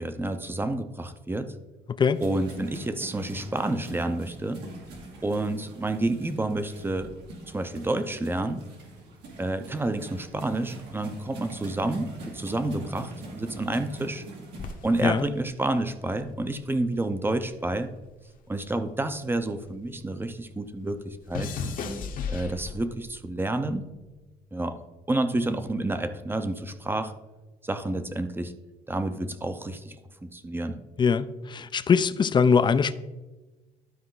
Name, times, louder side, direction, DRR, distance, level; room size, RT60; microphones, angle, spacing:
voice 1, 0.0-1.5 2.2-4.6 5.2-7.1 7.5-8.6 9.4-14.2 14.8-17.9 18.5-21.6 22.3-23.8 24.5-24.8 25.1-27.1 27.6-28.5 28.9-30.0 30.2-30.8, right 2 dB, 15° right, 0.6 m, -29 dB
sound 1, 2.1-14.8, right 1 dB, 85° right, 2.4 m, -44 dB
sound 2, 14.6-17.1 17.4-20.0 20.3-23.1 23.8-24.2, left 5 dB, 55° left, 1.0 m, -37 dB
voice 2, 31.0-32.9, left 6 dB, 25° left, 0.4 m, -22 dB
12.0 x 4.6 x 3.9 m
cardioid pair, 110°, 17 cm